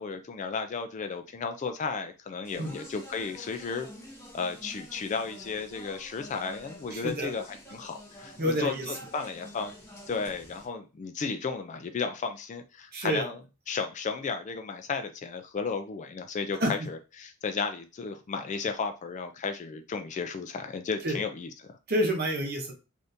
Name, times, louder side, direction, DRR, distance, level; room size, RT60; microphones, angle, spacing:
voice 1, 0.0-3.9 4.3-9.7 10.1-13.4 13.7-21.8, left 5 dB, 35° left, 7 dB, 0.3 m, -34 dB
Speech, 2.4-10.6, equal, 10° left, 0.8 m, -48 dB
voice 2, 6.9-7.3 8.4-8.9 12.9-13.3 16.6-16.7 21.0-21.2 21.9-22.7, equal, 45° right, 1 dB, 0.8 m, -28 dB
3.4 x 2.6 x 2.6 m, 0.30 s
head